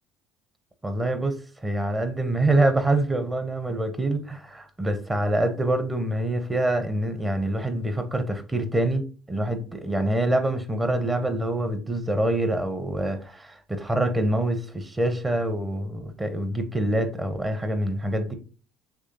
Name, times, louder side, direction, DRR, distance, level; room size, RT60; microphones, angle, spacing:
voice 1, 0.8-9.0 9.3-18.3, right 1 dB, 20° right, 0.9 m, -25 dB
6.0 x 3.1 x 2.9 m
hypercardioid pair, 60°, 0 cm